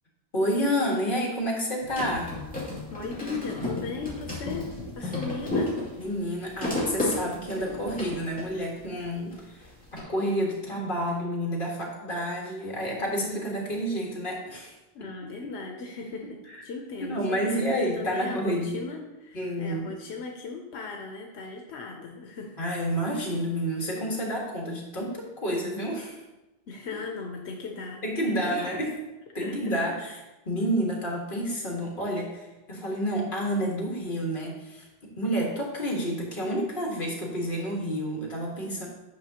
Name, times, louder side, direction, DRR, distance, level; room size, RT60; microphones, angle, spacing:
voice 1, 0.3-2.3 6.0-9.6 9.9-14.7 16.5-16.6 17.0-18.8 19.3-19.9 22.6-26.2 28.0-29.0 29.3-30.1 30.5-32.4 32.7-34.9 35.2-38.9, equal, 55° left, -2 dB, 1.8 m, -29 dB
sound 1, 1.8-9.3 9.6-10.0, left 2 dB, 10° left, 2.4 m, -32 dB
voice 2, 2.9-5.8 14.9-22.6 26.7-28.8 29.4-30.1, left 4 dB, 90° left, 2 dB, 1.0 m, -38 dB
8.9 x 5.7 x 2.9 m, 1.0 s
omnidirectional pair, 1.1 m